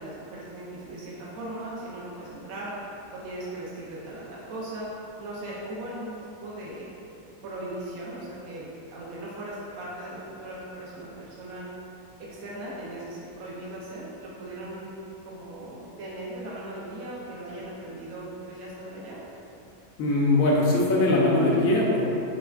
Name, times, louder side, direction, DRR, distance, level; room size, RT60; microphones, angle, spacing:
voice 1, 0.0-2.7 3.1-4.9 5.2-6.9 7.4-11.6 12.2-14.9 15.2-19.2, right 1 dB, 80° right, -7 dB, 1.1 m, -38 dB
voice 2, 20.0-22.2, left 2 dB, 75° left, -4 dB, 1.1 m, -21 dB
6.5 x 2.2 x 2.3 m, 2.9 s
omnidirectional pair, 1.5 m